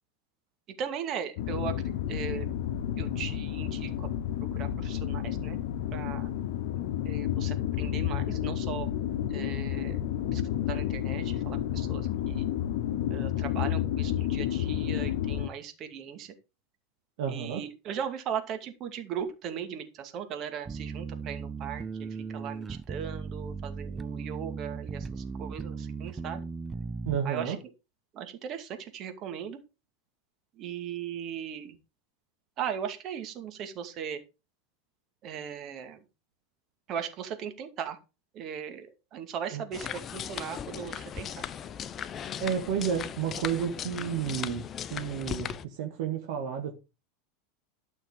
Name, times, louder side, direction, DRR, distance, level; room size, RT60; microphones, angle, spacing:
voice 1, 0.8-1.7 2.0-2.5 3.0-4.1 4.5-5.6 5.9-6.3 7.0-8.9 9.3-10.0 10.3-10.4 10.7-12.5 13.1-16.3 17.3-26.4 27.2-27.6 28.1-29.6 30.6-31.8 32.6-34.2 35.2-36.0 36.9-38.0 38.3-41.5, right 8 dB, 45° right, 2.4 m, -38 dB
sound 1, 1.4-15.5, left 11 dB, 60° left, 1.1 m, -31 dB
voice 2, 17.2-17.6 27.1-27.6 39.5-39.6 42.4-44.6 44.9-46.7, right 8 dB, 60° right, 1.8 m, -31 dB
sound 2, 20.7-27.2, right 5 dB, 20° right, 0.6 m, -37 dB
sound 3, 39.7-45.6, left 8 dB, 35° left, 0.8 m, -37 dB
12.0 x 6.5 x 4.9 m
hypercardioid pair, 85°, 0 cm